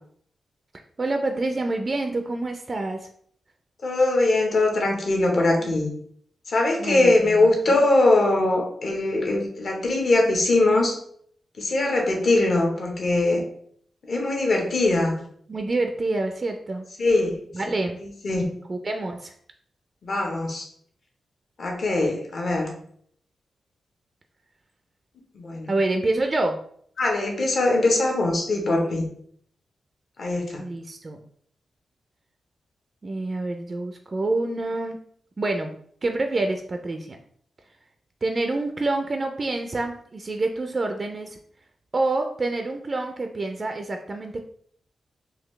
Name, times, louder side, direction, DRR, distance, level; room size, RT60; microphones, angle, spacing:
voice 1, 1.0-3.1 5.5-5.7 6.8-7.8 15.5-16.8 17.5-18.0 18.7-19.3 25.7-26.6 30.6-31.2 33.0-35.0 35.4-35.8 36.0-37.2 38.2-41.4 41.9-44.4, right 2 dB, 35° right, 5 dB, 0.3 m, -27 dB
voice 2, 3.8-5.9 6.5-11.0 11.6-13.4 14.1-15.2 17.0-17.4 18.2-18.4 20.0-20.7 21.6-22.7 25.4-25.7 27.0-29.1 30.2-30.6, left 2 dB, 55° left, 1 dB, 0.9 m, -21 dB
3.9 x 2.7 x 3.1 m, 0.63 s
wide cardioid pair, 120°, 0 cm